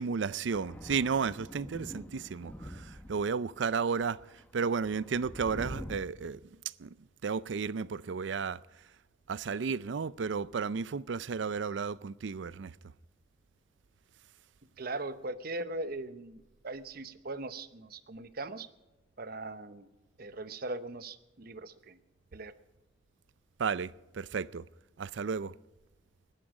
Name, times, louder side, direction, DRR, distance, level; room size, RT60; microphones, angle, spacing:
voice 1, 0.0-4.2 4.5-6.4 6.8-6.9 7.2-8.6 9.3-12.7 23.6-24.6 25.0-25.5, right 5 dB, 70° right, 0.5 m, -33 dB
Thunder, 0.5-3.5 4.0-6.0, equal, 10° left, 1.0 m, -45 dB
voice 2, 14.8-18.7 19.2-19.9 20.2-22.0 22.3-22.5, right 2 dB, 50° right, 0.9 m, -40 dB
20.5 x 11.5 x 4.9 m
head